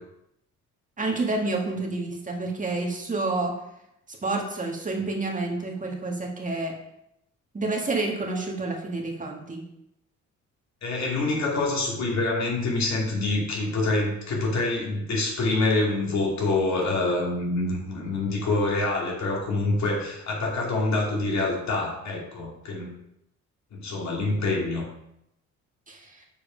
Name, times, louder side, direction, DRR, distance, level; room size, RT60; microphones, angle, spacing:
voice 1, 1.0-3.6 4.1-6.7 7.5-9.6 25.9-26.2, right 3 dB, 25° right, 0 dB, 1.7 m, -29 dB
voice 2, 10.8-22.9 23.7-24.9, left 2 dB, 65° left, -1 dB, 2.5 m, -26 dB
7.0 x 4.8 x 5.1 m, 0.80 s
cardioid pair, 90°, 30 cm